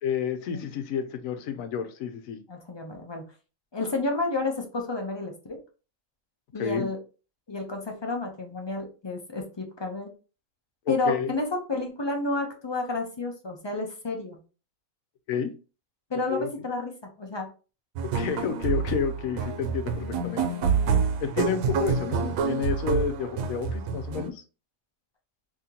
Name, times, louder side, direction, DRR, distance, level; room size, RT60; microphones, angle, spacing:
voice 1, 0.0-2.4 6.6-6.9 10.9-11.3 15.3-15.5 16.3-16.5 18.1-20.4 21.2-24.4, left 7 dB, 85° left, 8 dB, 1.0 m, -30 dB
voice 2, 2.5-3.2 3.7-5.6 6.5-7.0 7.5-10.1 10.9-14.4 16.1-17.5, left 2 dB, 35° left, 2 dB, 0.4 m, -31 dB
sound 1, 18.0-24.3, right 6 dB, 85° right, 1.0 m, -27 dB
2.8 x 2.8 x 3.7 m, 0.34 s
omnidirectional pair, 1.4 m